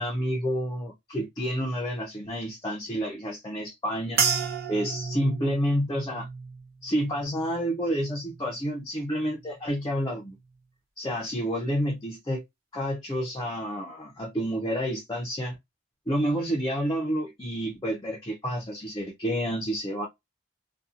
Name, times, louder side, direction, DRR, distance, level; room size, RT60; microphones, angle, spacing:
voice 1, 0.0-4.2 4.7-6.3 6.8-10.4 11.0-12.4 12.7-15.6 16.1-20.1, equal, 20° left, 0.5 m, -29 dB
sound 1, 4.2-8.7 9.0-9.7 10.3-10.5, right 6 dB, 55° right, 0.8 m, -33 dB
2.7 x 2.2 x 2.4 m
head